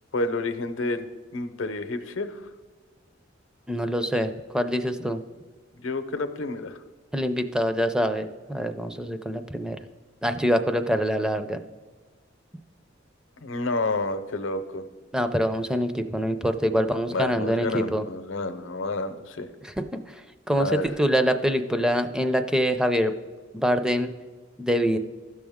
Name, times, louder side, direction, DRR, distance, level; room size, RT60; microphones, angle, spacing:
voice 1, 0.1-1.1 1.3-2.4 5.0-5.1 5.8-6.8 13.4-14.9 17.1-19.5 20.6-20.9, left 2 dB, 85° left, 9 dB, 0.7 m, -29 dB
voice 2, 3.7-5.2 7.1-9.8 10.2-11.6 15.1-18.0 19.6-23.1 23.5-24.1 24.6-25.0, equal, 5° right, 8 dB, 0.4 m, -25 dB
15.5 x 6.2 x 3.6 m, 1.4 s
head